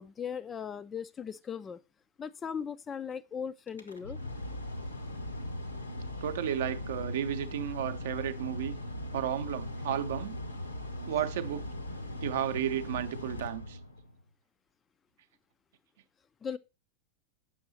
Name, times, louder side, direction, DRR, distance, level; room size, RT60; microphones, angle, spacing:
voice 1, 0.0-1.8 2.2-4.2 16.4-16.6, left 7 dB, 20° left, 0.3 m, -38 dB
Mechanical fan, 3.7-14.2, left 1 dB, 80° left, 1.1 m, -39 dB
voice 2, 6.2-8.8 9.1-10.3 11.1-11.7 12.2-13.8, right 10 dB, 55° right, 0.6 m, -33 dB
7.7 x 6.1 x 4.0 m
figure-of-eight pair, 90°, 0 cm